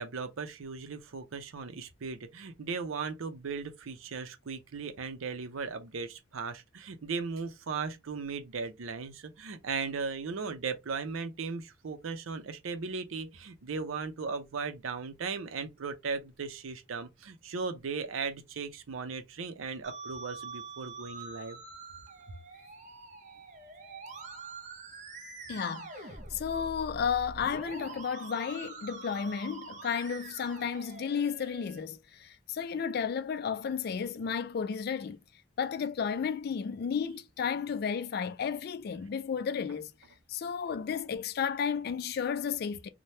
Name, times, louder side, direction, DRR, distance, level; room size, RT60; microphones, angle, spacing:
voice 1, 0.0-21.6, right 5 dB, 90° right, 0.6 m, -37 dB
Musical instrument, 19.8-31.8, right 3 dB, 40° right, 0.6 m, -45 dB
voice 2, 25.5-35.2 35.6-39.9 40.3-42.9, left 7 dB, 50° left, 0.3 m, -33 dB
3.2 x 2.2 x 2.7 m
head